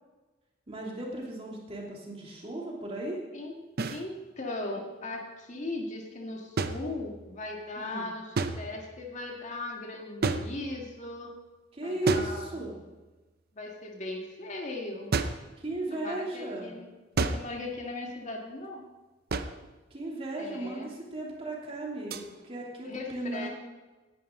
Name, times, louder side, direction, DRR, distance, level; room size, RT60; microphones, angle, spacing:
voice 1, 0.7-3.2 7.8-8.1 11.7-12.7 15.6-16.7 19.9-23.5, right 2 dB, 30° right, -2 dB, 2.7 m, -35 dB
sound 1, 3.8-4.0 6.6-7.4 8.4-9.0 10.2-11.0 12.1-12.9 15.1-15.5 17.2-17.7 19.3-19.7 22.1-22.3, right 3 dB, 55° right, 0.7 m, -31 dB
voice 2, 3.9-11.3 11.8-12.5 13.5-15.1 15.9-16.9 17.3-18.9 20.4-20.9 22.9-23.5, left 2 dB, 40° left, 0 dB, 1.9 m, -38 dB
18.0 x 11.0 x 3.8 m, 1.2 s
head